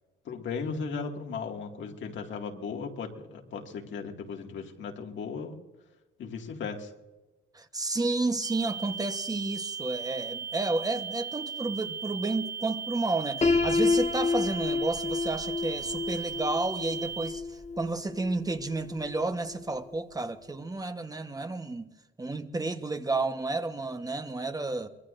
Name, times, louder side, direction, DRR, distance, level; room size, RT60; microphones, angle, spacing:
voice 1, 0.3-5.6 6.2-6.9, left 5 dB, 70° left, 2.1 m, -36 dB
voice 2, 7.5-21.9 22.2-24.9, right 2 dB, 20° right, 1.1 m, -31 dB
sound 1, 8.4-17.3, right 7 dB, 65° right, 3.4 m, -37 dB
Piano, 13.4-19.3, left 4 dB, 35° left, 1.2 m, -29 dB
24.0 x 20.0 x 2.6 m
cardioid pair, 90°, 20 cm